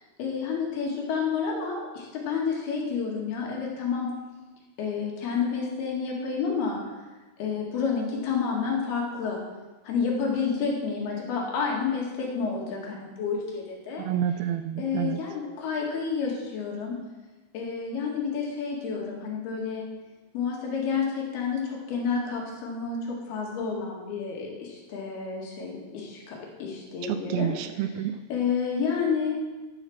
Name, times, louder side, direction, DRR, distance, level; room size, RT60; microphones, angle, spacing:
voice 1, 0.2-4.1 4.8-6.8 7.4-9.4 9.8-14.0 14.8-17.0 17.5-19.9 20.3-27.5 28.3-29.4, left 5 dB, 75° left, -2 dB, 4.0 m, -29 dB
voice 2, 14.0-15.2 27.0-28.2, right 10 dB, 80° right, 10 dB, 2.3 m, -29 dB
12.0 x 7.5 x 6.4 m, 1.2 s
omnidirectional pair, 4.6 m